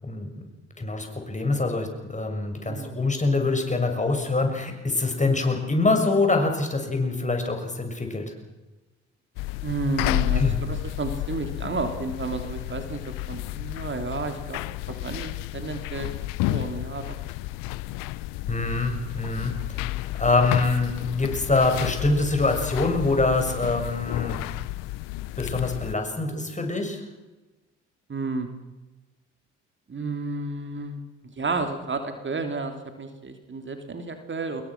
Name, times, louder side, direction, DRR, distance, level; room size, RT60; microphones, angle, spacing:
voice 1, 0.8-8.2 10.4-10.6 18.5-19.5 20.2-24.5 25.4-27.0, left 3 dB, 20° left, 4 dB, 6.6 m, -24 dB
voice 2, 2.7-3.0 9.6-14.6 14.9-16.1 16.4-17.2 28.1-28.5 29.9-31.0 31.3-34.6, right 3 dB, 35° right, 6 dB, 3.3 m, -31 dB
sound 1, 9.4-26.0, left 17 dB, 70° left, 0.9 m, -31 dB
27.0 x 21.5 x 6.1 m, 1.1 s
hypercardioid pair, 50°, 34 cm